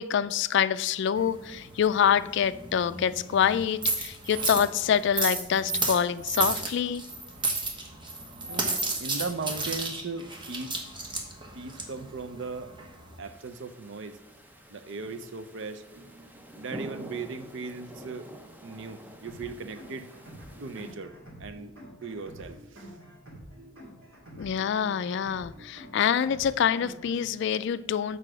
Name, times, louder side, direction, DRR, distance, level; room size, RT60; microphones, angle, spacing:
voice 1, 0.0-7.0 8.5-8.8 24.4-28.2, left 8 dB, 60° left, 0.3 m, -26 dB
sound 1, 1.1-13.2, right 3 dB, 25° right, 1.2 m, -33 dB
voice 2, 8.4-10.8 11.5-12.7 13.2-14.2 14.7-18.3 18.6-20.1 20.6-21.1 21.4-21.7 22.0-22.9 25.6-25.7, right 4 dB, 65° right, 0.6 m, -38 dB
sound 2, 13.2-20.9, equal, 10° right, 0.7 m, -47 dB
sound 3, 19.3-27.3, equal, 85° right, 2.4 m, -48 dB
6.7 x 4.8 x 6.1 m
head